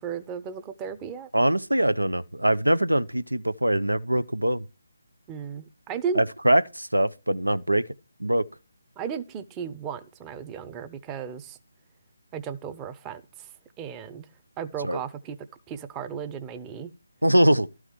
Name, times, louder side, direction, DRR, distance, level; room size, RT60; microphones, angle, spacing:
voice 1, 0.0-1.3 5.3-6.2 9.0-11.6 12.3-13.5 13.8-14.3 14.6-15.4 15.7-16.9, right 7 dB, 15° right, 0.8 m, -35 dB
voice 2, 1.3-4.6 6.1-7.9 8.2-8.5 14.8-15.0 17.2-17.7, right 1 dB, 85° right, 0.7 m, -22 dB
12.5 x 4.8 x 7.9 m
figure-of-eight pair, 150°, 0 cm